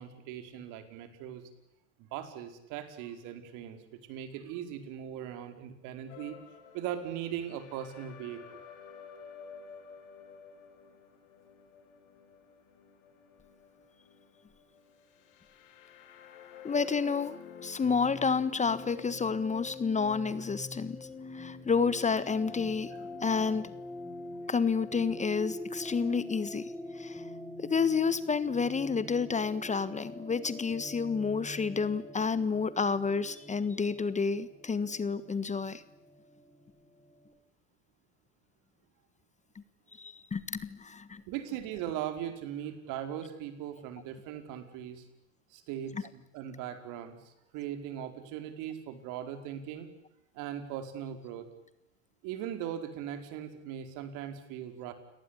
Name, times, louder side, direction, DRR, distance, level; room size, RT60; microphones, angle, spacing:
voice 1, 0.0-1.5 2.1-3.8 4.1-6.4 6.7-8.4 41.3-45.0 45.5-47.2 47.5-49.9 50.3-51.5 52.2-54.9, right 10 dB, 60° right, 8 dB, 4.9 m, -39 dB
sound 1, 6.1-25.7, left 7 dB, 65° left, 6.4 m, -52 dB
voice 2, 16.6-21.0 21.3-22.9 23.2-23.7 24.5-27.2 27.6-35.8 40.0-41.2, left 5 dB, 20° left, 15 dB, 1.4 m, -30 dB
sound 2, 17.8-37.3, left 1 dB, 5° left, 4.0 m, -45 dB
29.5 x 19.0 x 9.9 m, 0.86 s
hypercardioid pair, 85°, 36 cm